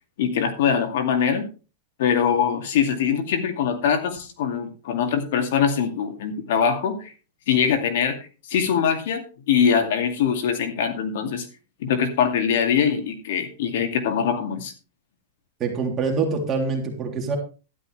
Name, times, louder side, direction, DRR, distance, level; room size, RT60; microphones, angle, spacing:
voice 1, 0.2-1.5 2.0-7.1 7.5-11.5 11.8-14.7, left 7 dB, 65° left, 6 dB, 2.4 m, -23 dB
voice 2, 15.6-17.4, right 4 dB, 20° right, 1 dB, 3.3 m, -25 dB
12.5 x 11.0 x 3.4 m, 0.34 s
supercardioid pair, 160°, 0 cm